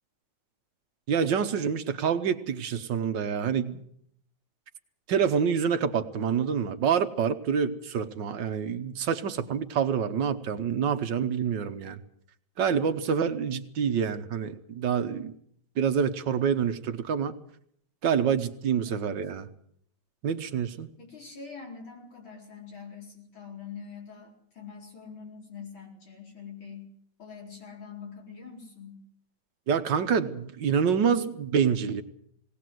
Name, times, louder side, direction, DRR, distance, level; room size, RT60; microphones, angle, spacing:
voice 1, 1.1-3.8 5.1-12.0 12.6-15.3 15.8-17.4 18.0-19.5 20.2-20.9 29.7-32.0, right 7 dB, 70° right, 10 dB, 1.7 m, -27 dB
voice 2, 21.0-26.9 27.2-29.0, left 6 dB, 90° left, 1 dB, 5.2 m, -44 dB
19.5 x 18.0 x 7.8 m, 0.68 s
omnidirectional pair, 2.1 m